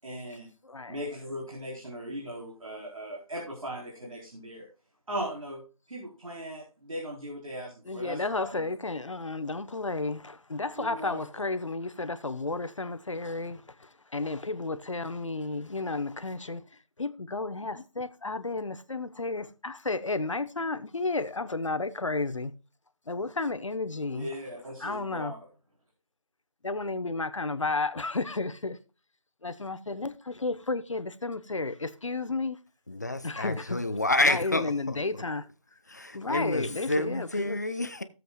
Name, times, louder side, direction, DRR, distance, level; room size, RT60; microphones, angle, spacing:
voice 1, 0.0-0.5 0.9-4.7 5.1-5.6 5.9-8.6 10.8-11.3 24.1-25.4, equal, 65° right, 4.2 m, -38 dB
voice 2, 0.6-1.0 7.9-22.5 23.1-24.3 24.8-25.3 26.6-28.8 29.4-30.1 30.4-32.6 33.2-33.8 34.2-35.5 36.1-37.6, left 3 dB, 55° left, 1.1 m, -32 dB
voice 3, 32.9-35.2 35.9-38.0, left 2 dB, 30° left, 0.7 m, -29 dB
16.5 x 7.7 x 2.3 m
figure-of-eight pair, 175°, 19 cm